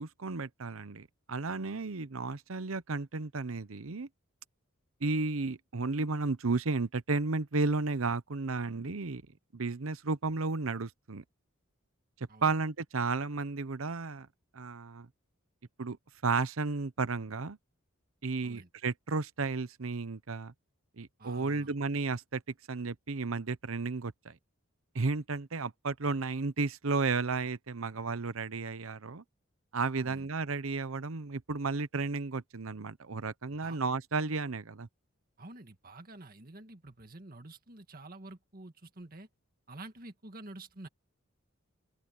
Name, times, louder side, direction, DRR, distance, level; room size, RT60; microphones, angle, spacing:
voice 1, 0.0-4.1 5.0-9.2 9.5-11.2 12.4-14.3 14.5-15.1 15.8-16.0 16.2-17.6 18.2-20.5 21.0-22.4 22.7-24.3 24.9-29.2 29.7-34.9, right 3 dB, 80° right, 0.9 m, -33 dB
voice 2, 21.2-21.7 30.0-30.3 33.5-33.8 35.4-39.3 39.7-40.9, right 2 dB, 45° right, 1.9 m, -49 dB
open air
head